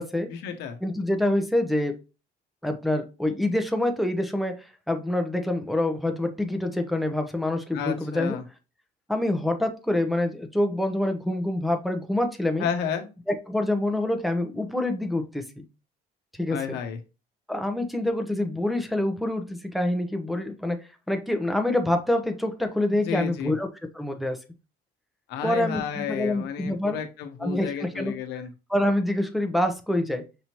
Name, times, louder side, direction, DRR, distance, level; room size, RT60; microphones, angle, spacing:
voice 1, 0.3-0.8 7.7-8.4 12.6-13.1 16.5-17.0 23.1-23.5 25.3-28.5, left 7 dB, 85° left, 7 dB, 0.8 m, -31 dB
voice 2, 0.8-2.0 2.6-8.4 9.1-12.7 13.3-15.6 16.3-16.8 17.5-20.8 21.1-23.7 23.9-24.4 25.4-27.0 27.4-28.1 28.7-30.2, left 1 dB, ahead, 5 dB, 0.7 m, -26 dB
5.3 x 3.0 x 2.9 m, 0.29 s
cardioid pair, 110°, 17 cm